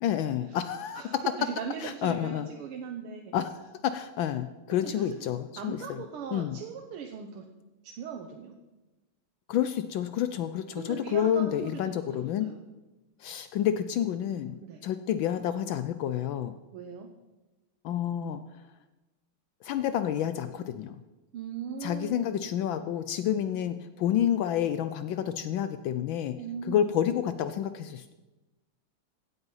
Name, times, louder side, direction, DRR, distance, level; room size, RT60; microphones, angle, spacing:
voice 1, 0.0-1.0 1.8-2.5 3.3-6.0 6.3-6.6 9.5-12.5 13.2-14.5 14.8-16.5 17.8-18.4 19.6-21.0 21.8-26.3 26.6-28.1, left 10 dB, 75° left, 11 dB, 1.2 m, -29 dB
voice 2, 0.9-3.3 4.7-5.2 5.6-7.5 7.8-8.6 10.8-12.6 14.6-14.8 16.7-17.1 21.3-22.4 26.4-26.8, right 7 dB, 80° right, 3 dB, 1.8 m, -39 dB
16.0 x 8.1 x 5.5 m, 1.1 s
omnidirectional pair, 2.4 m